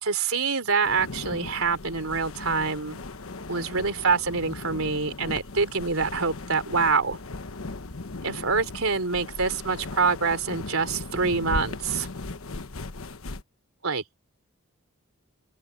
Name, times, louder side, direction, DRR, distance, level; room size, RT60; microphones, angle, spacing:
voice 1, 0.0-3.0 3.5-7.2 8.2-12.1 13.8-14.0, right 4 dB, 80° right, 3.3 m, -26 dB
sound 1, 0.8-13.4, left 2 dB, 80° left, 1.2 m, -37 dB
open air
head